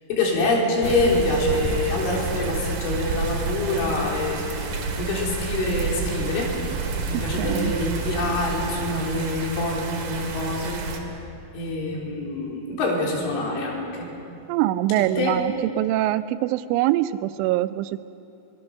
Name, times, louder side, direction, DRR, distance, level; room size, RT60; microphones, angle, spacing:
voice 1, 0.1-6.5 7.1-10.8 11.5-14.1 15.0-15.4, left 2 dB, 85° left, -2 dB, 6.1 m, -26 dB
sound 1, 0.8-11.0, right 4 dB, 55° right, 3.2 m, -29 dB
voice 2, 7.1-7.8 14.5-18.0, right 14 dB, 90° right, 13 dB, 3.1 m, -24 dB
24.0 x 21.0 x 6.5 m, 2.7 s
omnidirectional pair, 5.4 m